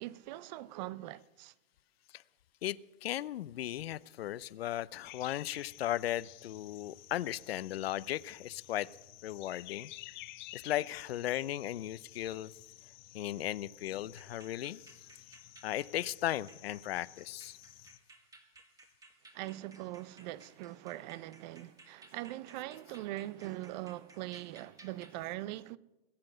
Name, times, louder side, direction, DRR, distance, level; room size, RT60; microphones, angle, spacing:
voice 1, 0.0-1.5 19.3-25.8, right 16 dB, 45° right, 0.6 m, -42 dB
voice 2, 2.6-8.9 9.2-9.9 10.5-12.5 13.1-14.8 15.6-17.6, left 13 dB, 75° left, 0.7 m, -36 dB
sound 1, 5.0-18.0, left 17 dB, 50° left, 1.0 m, -52 dB
sound 2, 14.1-25.2, right 3 dB, 10° right, 1.3 m, -60 dB
20.5 x 7.7 x 7.7 m
hypercardioid pair, 130°, 31 cm